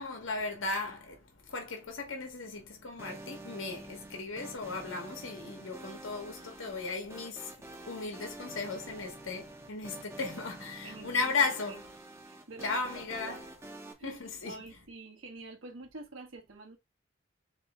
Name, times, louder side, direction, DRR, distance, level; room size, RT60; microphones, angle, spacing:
voice 1, 0.0-11.8 12.6-13.4 14.0-14.6, left 4 dB, 80° left, 1.1 m, -36 dB
sound 1, 3.0-13.9, right 2 dB, 15° right, 0.5 m, -48 dB
voice 2, 10.8-11.8 12.3-12.8 13.1-13.5 14.0-16.8, right 2 dB, 80° right, 0.9 m, -46 dB
4.0 x 3.0 x 3.4 m
head